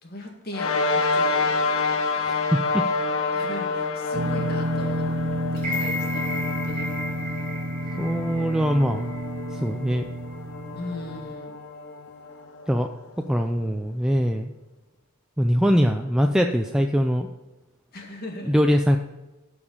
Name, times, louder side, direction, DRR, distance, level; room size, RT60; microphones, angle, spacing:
voice 1, 0.0-1.6 3.3-5.1 5.5-6.9 10.7-11.6 17.9-18.6, left 1 dB, 45° left, 1 dB, 2.1 m, -38 dB
sound 1, 0.5-13.3, left 4 dB, 75° left, 1.0 m, -29 dB
sound 2, 4.1-11.3, equal, 55° right, 0.7 m, -30 dB
sound 3, 5.6-9.7 10.1-10.2, left 1 dB, 35° right, 2.5 m, -34 dB
voice 2, 8.0-9.1 9.5-10.0 12.7-12.9 13.3-14.5 15.4-17.3 18.4-19.0, equal, 5° right, 4 dB, 0.4 m, -22 dB
14.0 x 5.0 x 5.5 m, 1.1 s
head